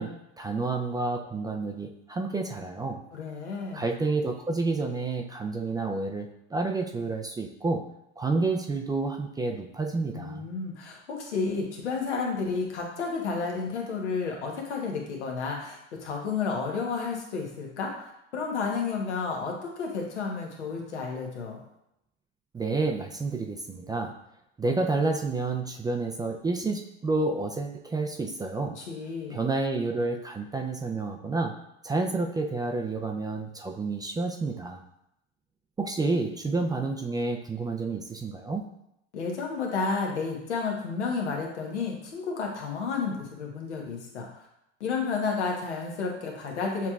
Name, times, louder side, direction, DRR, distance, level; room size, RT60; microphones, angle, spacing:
voice 1, 0.0-3.0 3.7-7.8 8.2-10.5 22.5-24.1 24.6-28.8 29.3-31.5 31.8-34.8 35.8-38.7, right 3 dB, 10° right, 3 dB, 0.3 m, -29 dB
voice 2, 3.1-3.9 10.1-18.1 18.3-21.6 28.8-29.4 39.1-44.3 44.8-46.9, left 4 dB, 85° left, 0 dB, 1.2 m, -31 dB
7.1 x 3.0 x 2.4 m, 0.81 s
hypercardioid pair, 90°, 33 cm